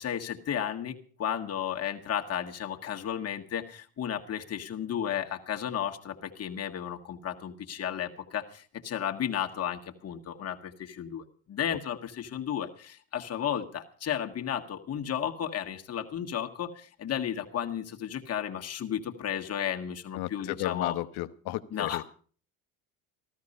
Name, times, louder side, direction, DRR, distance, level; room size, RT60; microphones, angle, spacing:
voice 1, 0.0-21.0 21.7-22.0, left 9 dB, 35° left, 3 dB, 1.8 m, -33 dB
voice 2, 20.1-22.0, left 17 dB, 65° left, 13 dB, 1.1 m, -33 dB
14.5 x 13.5 x 5.5 m, 0.43 s
supercardioid pair, 100°, 42 cm